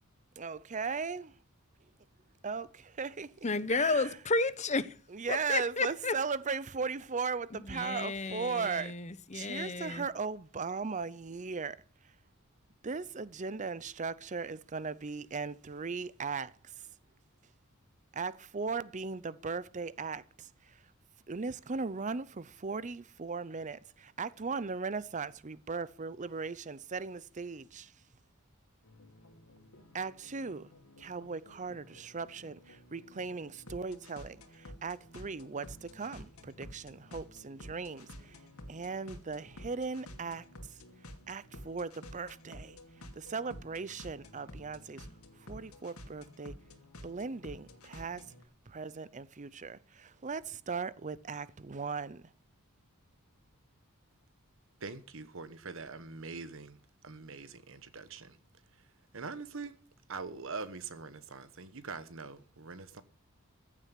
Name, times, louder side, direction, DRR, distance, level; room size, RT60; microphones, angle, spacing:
voice 1, 0.4-1.3 2.4-2.7 3.0-3.3 3.7-4.1 5.1-8.9 9.3-11.8 12.8-16.9 18.1-20.8 21.3-27.9 29.9-30.7 31.0-38.4 38.7-40.4 41.3-42.8 43.2-45.1 45.4-46.5 47.0-48.2 48.7-52.2, right 5 dB, 35° right, 0.6 m, -38 dB
voice 2, 3.4-5.0 5.3-6.1 7.5-10.1, left 3 dB, 30° left, 0.9 m, -32 dB
sound 1, 28.8-48.4, left 1 dB, 80° left, 2.6 m, -52 dB
voice 3, 54.8-56.8 57.0-58.4 59.1-59.7 60.1-63.0, right 4 dB, 65° right, 1.2 m, -43 dB
15.0 x 7.5 x 8.4 m
head